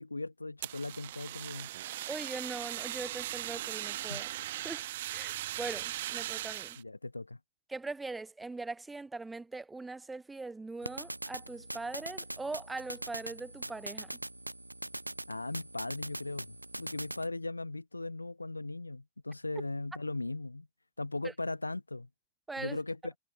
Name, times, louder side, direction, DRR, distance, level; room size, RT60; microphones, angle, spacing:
voice 1, 0.0-1.7 4.1-4.2 6.8-7.4 15.3-20.7 21.0-22.1 22.6-23.1, left 2 dB, 80° left, 1.2 m, -38 dB
Fire, 0.6-6.8, right 14 dB, 55° right, 2.2 m, -39 dB
voice 2, 2.1-4.8 5.1-6.8 7.7-14.1 22.5-22.8, right 3 dB, 10° right, 3.8 m, -41 dB
sound 1, 10.8-17.3, right 1 dB, 85° right, 4.6 m, -42 dB
figure-of-eight pair, 90°, 0 cm